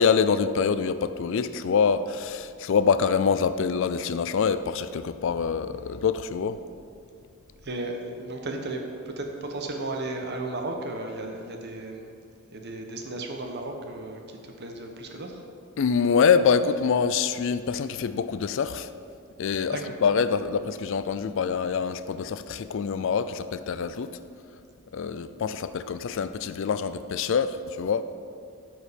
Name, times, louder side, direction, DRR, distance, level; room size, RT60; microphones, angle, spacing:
voice 1, 0.0-6.6 15.8-18.9 19.4-24.2 24.9-28.0, left 6 dB, 65° left, 13 dB, 0.4 m, -25 dB
voice 2, 7.6-12.1 12.5-15.4 19.7-19.9, right 2 dB, 50° right, 3 dB, 1.0 m, -34 dB
12.5 x 4.7 x 5.2 m, 2.3 s
head